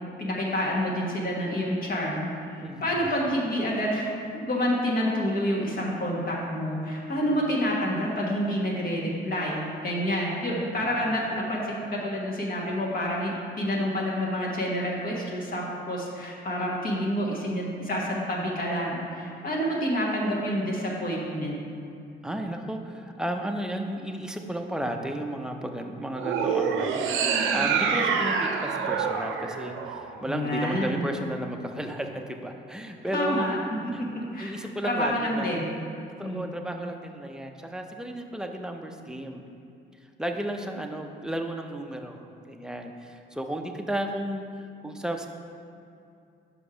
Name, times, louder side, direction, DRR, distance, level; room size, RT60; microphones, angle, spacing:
voice 1, 0.2-2.2 2.5-4.1 4.4-21.6 30.3-31.0 33.1-33.6 33.8-34.1 34.3-34.5 34.8-35.7 36.2-36.5, equal, 45° left, -4 dB, 1.4 m, -28 dB
voice 2, 2.6-3.2 10.8-11.1 22.2-33.5 33.9-35.6 36.2-39.4 40.2-45.3, right 1 dB, 5° right, 3 dB, 0.5 m, -34 dB
sound 1, 26.1-30.5, right 6 dB, 85° right, 0.6 m, -26 dB
5.4 x 5.1 x 4.9 m, 2.6 s
cardioid pair, 90°, 20 cm